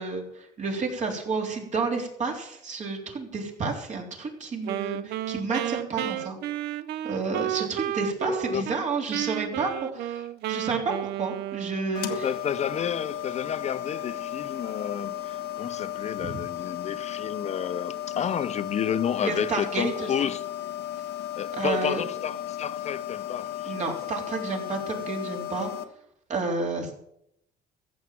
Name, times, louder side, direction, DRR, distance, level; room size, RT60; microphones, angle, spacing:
voice 1, 0.0-6.4 7.0-10.2 10.5-12.3 16.2-16.3 19.2-20.1 21.5-22.0 23.7-25.7 26.3-26.9, right 4 dB, 45° right, 3.7 m, -30 dB
Wind instrument woodwind instrument, 4.6-8.8 9.1-12.0, right 13 dB, 75° right, 0.6 m, -32 dB
voice 2, 8.3-8.7 12.1-20.4 21.4-23.8, left 8 dB, 40° left, 0.6 m, -31 dB
sound 1, 11.9-25.8, left 12 dB, 90° left, 1.4 m, -35 dB
14.5 x 7.7 x 7.5 m
cardioid pair, 110°, 17 cm